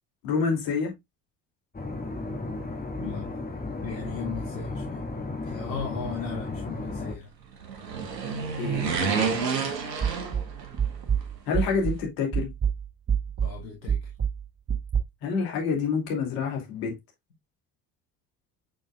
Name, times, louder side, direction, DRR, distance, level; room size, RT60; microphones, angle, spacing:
voice 1, 0.2-0.9 8.6-9.4 11.5-12.5 15.2-17.0, left 5 dB, 70° left, 2.8 m, -28 dB
sound 1, 1.7-7.1, left 2 dB, 20° left, 1.8 m, -34 dB
voice 2, 3.8-5.0 5.5-7.3 13.4-14.0, left 5 dB, 85° left, 1.5 m, -37 dB
sound 2, 7.5-11.0 11.2-11.3, right 5 dB, 85° right, 1.1 m, -29 dB
sound 3, 10.0-12.1 12.3-15.0, right 7 dB, 40° right, 1.7 m, -27 dB
6.5 x 6.4 x 2.3 m
figure-of-eight pair, 55°, 48 cm